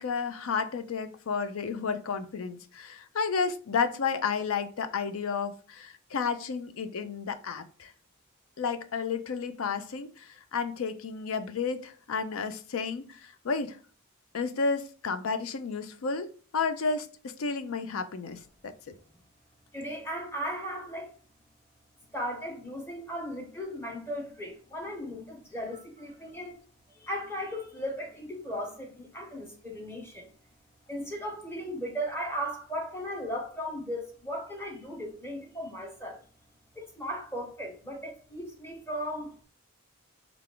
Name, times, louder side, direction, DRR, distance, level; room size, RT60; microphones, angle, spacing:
voice 1, 0.0-7.9 8.6-13.8 14.3-18.9, left 5 dB, 70° left, 0.5 m, -32 dB
voice 2, 19.7-21.1 22.1-26.6 26.9-30.3 30.9-36.2 36.7-39.3, equal, 10° left, 0.9 m, -36 dB
3.4 x 2.4 x 3.6 m
head